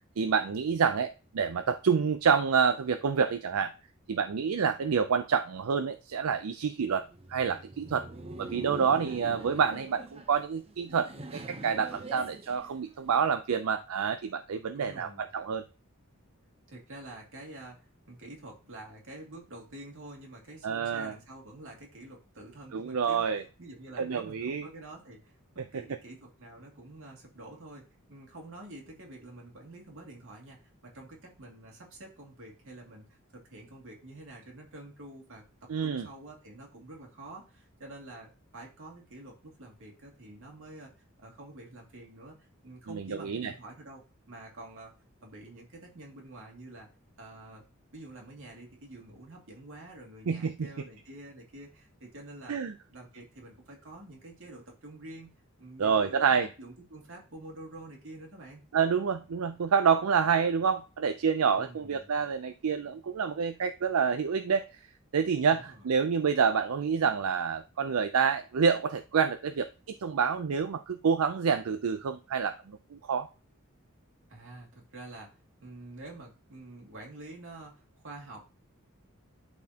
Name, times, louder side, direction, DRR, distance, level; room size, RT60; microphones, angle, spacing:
voice 1, 0.2-3.7 4.1-7.0 7.3-8.1 8.4-15.6 20.6-21.1 22.7-23.4 24.0-24.7 35.7-36.1 42.9-43.5 50.3-50.7 52.5-52.7 55.8-56.5 58.7-64.8 65.1-73.3, right 6 dB, 85° right, 9 dB, 0.5 m, -28 dB
Laughter, 7.0-13.3, right 2 dB, 30° right, 0.8 m, -44 dB
voice 2, 14.7-15.3 16.7-40.9 41.2-44.9 45.2-46.9 47.2-47.6 47.9-52.5 52.9-55.3 55.6-58.6 61.6-62.1 65.5-65.9 74.3-78.5, right 2 dB, 65° right, 0 dB, 2.4 m, -48 dB
12.0 x 4.3 x 2.8 m, 0.32 s
head